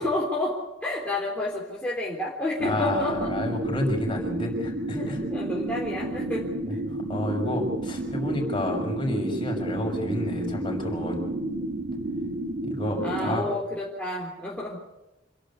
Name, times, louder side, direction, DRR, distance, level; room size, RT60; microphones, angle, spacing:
voice 1, 0.0-3.3 4.9-6.8 13.0-14.8, left 1 dB, 5° left, -5 dB, 3.8 m, -30 dB
voice 2, 2.6-5.2 6.7-11.2 12.6-13.4, left 1 dB, 25° left, 1 dB, 6.1 m, -30 dB
sound 1, 2.6-13.4, right 1 dB, 65° right, 1.9 m, -31 dB
27.0 x 12.0 x 10.0 m, 0.98 s
head